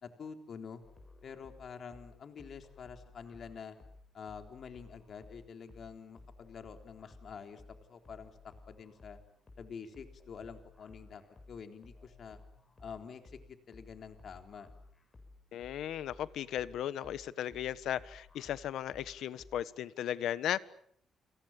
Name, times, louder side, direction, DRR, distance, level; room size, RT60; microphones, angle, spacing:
voice 1, 0.0-0.8 1.2-3.8 4.1-8.3 8.7-9.2 9.6-11.2 11.5-12.4 12.8-13.4 13.7-14.7, left 6 dB, 50° left, 6 dB, 3.6 m, -47 dB
sound 1, 0.8-19.6, left 3 dB, 25° left, 7.2 m, -57 dB
voice 2, 15.5-20.6, left 11 dB, 80° left, 16 dB, 1.3 m, -36 dB
29.0 x 27.0 x 7.3 m, 0.66 s
cardioid pair, 150°, 0 cm